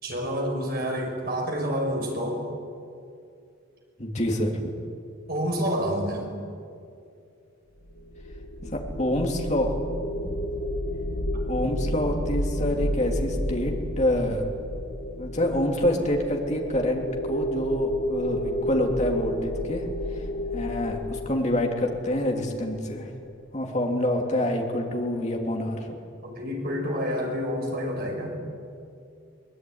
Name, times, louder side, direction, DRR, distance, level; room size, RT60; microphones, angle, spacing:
voice 1, 0.0-2.5 5.3-6.3 26.2-28.4, equal, 50° right, 1 dB, 5.9 m, -28 dB
voice 2, 4.0-4.7 8.6-9.7 11.5-14.4 15.2-19.8 20.5-23.1 23.5-25.9, left 1 dB, 35° left, 1 dB, 3.2 m, -27 dB
sound 1, 7.9-23.1, left 1 dB, 75° left, 1.7 m, -31 dB
23.0 x 20.5 x 9.7 m, 2.5 s
head